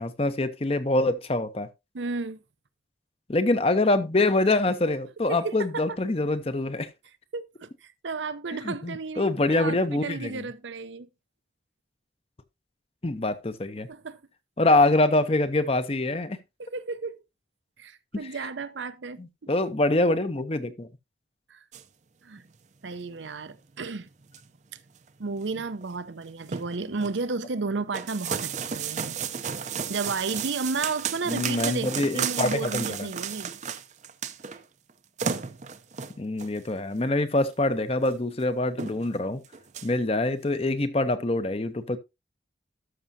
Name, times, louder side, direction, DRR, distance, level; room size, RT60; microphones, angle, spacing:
voice 1, 0.0-1.7 3.3-6.9 8.6-10.4 13.0-13.9 14.6-16.4 18.1-18.3 19.2-20.9 31.3-33.1 36.2-39.4 39.8-42.0, left 2 dB, 30° left, 0.7 m, -25 dB
voice 2, 1.9-2.4 5.3-6.0 7.3-11.1 13.9-14.2 16.6-17.2 17.8-19.3 21.5-21.6 22.2-22.4 22.8-24.1 25.2-29.2 29.9-33.5, right 4 dB, 85° right, 0.7 m, -33 dB
sound 1, 21.7-21.8 22.4-22.6 22.9-23.0 23.5-23.6 24.1-24.6 25.0-25.1 25.4-25.5 25.8-26.0 26.2-27.2 27.9-34.6 34.9-35.0 35.2-36.6 37.4-37.5 38.0-38.1 38.4-38.5 38.8-39.2 39.4-39.9, right 7 dB, 40° right, 0.5 m, -33 dB
12.5 x 6.2 x 2.7 m
head